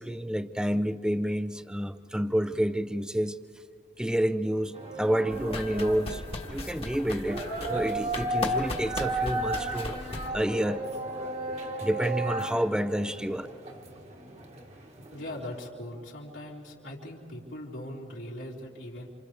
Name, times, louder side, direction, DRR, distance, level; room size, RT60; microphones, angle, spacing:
voice 1, 0.0-3.4 4.0-6.2 6.5-7.4 7.7-10.0 10.3-10.8 11.8-13.5, equal, 5° right, 11 dB, 0.5 m, -29 dB
sound 1, 4.7-15.6, right 2 dB, 35° right, 1.3 m, -35 dB
sound 2, 5.3-10.3, left 2 dB, 30° left, 1.3 m, -37 dB
voice 2, 15.1-19.1, left 1 dB, 85° left, -5 dB, 3.8 m, -40 dB
28.5 x 27.5 x 3.5 m, 2.5 s
head